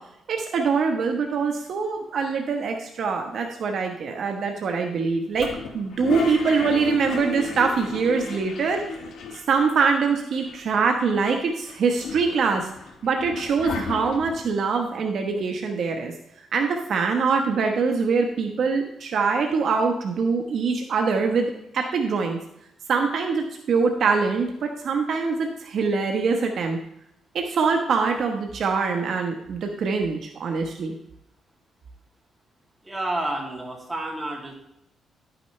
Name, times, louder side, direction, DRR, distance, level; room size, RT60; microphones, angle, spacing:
voice 1, 0.3-5.5 5.7-8.8 9.3-12.7 13.0-16.1 16.5-22.4 22.9-24.5 24.8-26.8 27.3-30.9, right 5 dB, 60° right, 3 dB, 1.1 m, -24 dB
Toilet flush, 5.4-9.7 10.0-10.1 10.3-11.2 11.7-14.5, left 4 dB, 70° left, 1.3 m, -33 dB
voice 2, 32.8-34.5, right 1 dB, 10° right, -2 dB, 2.5 m, -30 dB
11.5 x 9.1 x 3.2 m, 0.79 s
cardioid pair, 135°, 0 cm